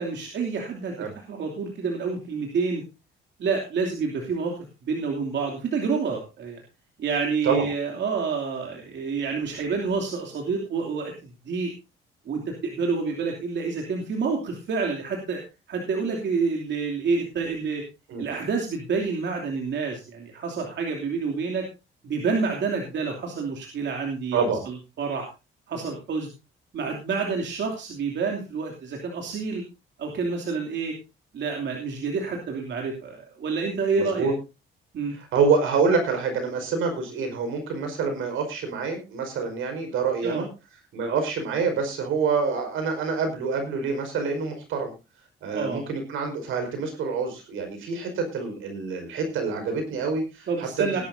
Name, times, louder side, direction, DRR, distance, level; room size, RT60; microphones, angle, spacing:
voice 1, 0.0-2.8 3.4-4.5 4.9-6.6 7.0-11.1 11.5-11.7 12.3-15.4 15.7-17.8 18.2-21.6 22.0-24.4 24.7-25.2 25.7-26.3 26.7-29.6 30.0-30.9 31.3-34.3 34.9-35.1 40.2-40.4 45.5-45.8 50.5-51.0, right 5 dB, 65° right, 1 dB, 2.9 m, -28 dB
voice 2, 33.9-34.3 35.1-40.5 40.9-44.9 45.4-51.0, right 5 dB, 85° right, 5 dB, 5.0 m, -26 dB
19.5 x 11.5 x 2.7 m, 0.28 s
cardioid pair, 90°, 20 cm